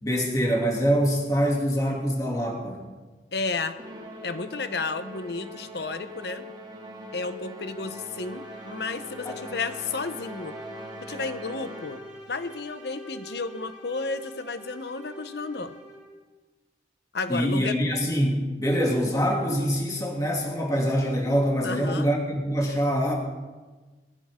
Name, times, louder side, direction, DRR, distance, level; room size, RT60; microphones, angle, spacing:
voice 1, 0.0-2.8 9.2-9.4 17.3-23.1, equal, 20° left, -2 dB, 2.8 m, -24 dB
voice 2, 3.3-3.8 4.2-6.4 7.1-10.6 11.0-15.8 17.1-17.8 21.6-22.1, left 3 dB, 65° left, 10 dB, 1.0 m, -32 dB
Musical instrument, 3.8-12.3, equal, 25° right, 1.8 m, -42 dB
sound 1, 7.9-16.3, right 1 dB, 5° right, 4.8 m, -46 dB
21.5 x 16.5 x 3.8 m, 1.3 s
head